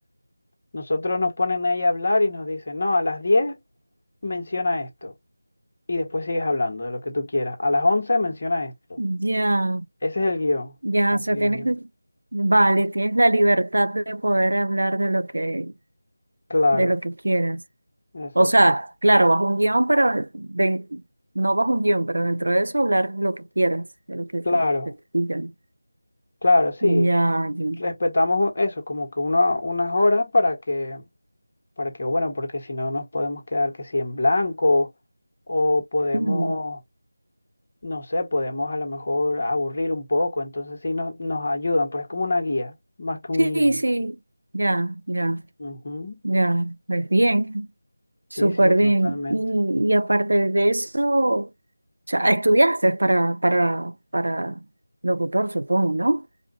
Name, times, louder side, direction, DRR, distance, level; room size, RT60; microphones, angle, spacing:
voice 1, 0.7-3.6 4.2-5.1 5.9-9.0 10.0-10.7 11.1-11.7 16.5-16.9 18.1-18.5 24.4-24.9 26.4-27.1 27.8-31.0 31.8-34.9 35.5-36.8 37.8-43.7 45.6-46.2 48.3-49.4, left 2 dB, 40° left, 1.7 m, -24 dB
voice 2, 9.0-9.8 10.8-11.9 12.3-15.7 16.7-17.6 18.3-21.0 21.3-24.6 25.1-25.5 26.8-27.8 36.1-36.6 43.4-44.2 44.5-45.4 46.2-47.7 48.3-51.5 52.1-54.6 55.0-56.3, right 1 dB, 70° right, 0.7 m, -21 dB
4.9 x 2.5 x 2.8 m
figure-of-eight pair, 170°, 0 cm